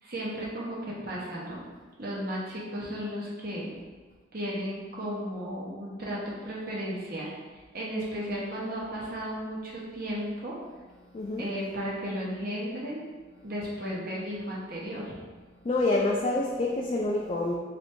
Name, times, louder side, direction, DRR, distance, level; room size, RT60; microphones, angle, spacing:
voice 1, 0.0-1.6 2.0-3.7 4.3-7.3 7.7-10.5 11.4-13.1 13.4-15.1, equal, 50° right, -5 dB, 0.9 m, -34 dB
voice 2, 11.1-11.5 15.6-17.5, left 2 dB, 30° left, -3 dB, 0.3 m, -27 dB
3.2 x 2.6 x 4.4 m, 1.4 s
head